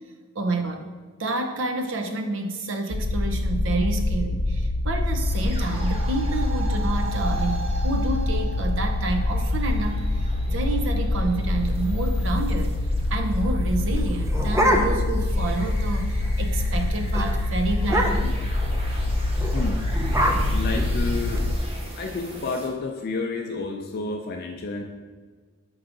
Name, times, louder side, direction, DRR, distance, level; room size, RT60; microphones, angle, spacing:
voice 1, 0.3-0.9 1.2-10.0 10.5-12.8 13.1-18.3, right 2 dB, 65° right, 5 dB, 0.7 m, -29 dB
sound 1, 2.9-21.6, left 2 dB, 80° left, 0.7 m, -25 dB
sound 2, 5.1-22.7, right 2 dB, 30° right, 0.9 m, -40 dB
sound 3, 14.0-15.2 15.6-15.7 16.0-16.3 16.6-16.8 17.1-17.3 17.8-18.4 19.3-21.4, equal, 15° right, 0.5 m, -25 dB
voice 2, 19.5-19.9 20.5-21.4 22.0-24.8, left 3 dB, 50° left, 2 dB, 0.4 m, -30 dB
6.2 x 4.6 x 3.7 m, 1.5 s
head